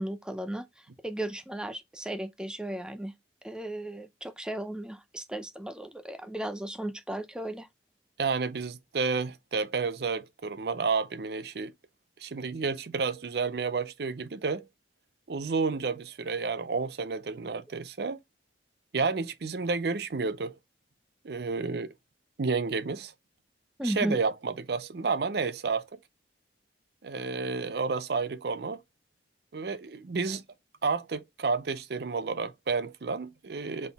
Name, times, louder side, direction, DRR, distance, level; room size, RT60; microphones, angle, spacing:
voice 1, 0.0-3.1 3.4-7.7 23.8-24.2, right 1 dB, 5° right, 0.4 m, -35 dB
voice 2, 8.2-11.7 12.2-14.6 15.3-18.2 18.9-20.5 21.2-21.9 22.4-23.1 23.8-25.9 27.0-28.8 29.5-30.4 30.8-33.9, right 4 dB, 60° right, 0.5 m, -31 dB
4.1 x 3.8 x 3.4 m
head